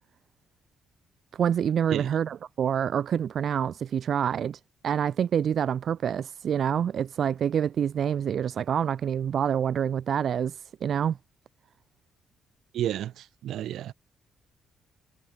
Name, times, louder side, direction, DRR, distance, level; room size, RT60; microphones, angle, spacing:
voice 1, 1.3-11.2, right 8 dB, 60° right, 0.6 m, -27 dB
voice 2, 12.7-13.9, right 12 dB, 75° right, 1.6 m, -31 dB
cardioid pair, 90°, 0 cm